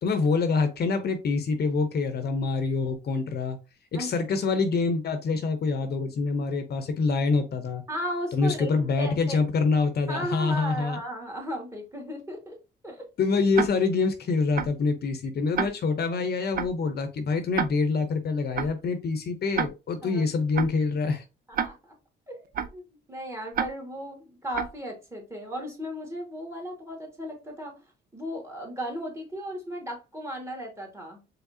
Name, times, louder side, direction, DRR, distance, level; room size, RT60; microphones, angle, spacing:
voice 1, 0.0-3.6 3.9-7.8 8.3-11.0 13.2-21.2, left 4 dB, 55° left, 0.7 m, -26 dB
voice 2, 7.9-9.4 10.1-12.5 12.8-13.1 20.0-20.2 21.5-21.9 22.3-27.8 28.1-31.2, equal, 15° right, 1.8 m, -36 dB
Tick-tock, 13.5-13.7 14.5-14.7 15.5-15.7 16.5-16.7 17.5-17.7 18.5-18.7 19.5-19.7 20.5-20.7 21.5-21.7 22.5-22.7 23.5-23.7 24.5-24.7, right 7 dB, 45° right, 0.5 m, -27 dB
4.8 x 3.2 x 2.7 m
cardioid pair, 90°, 20 cm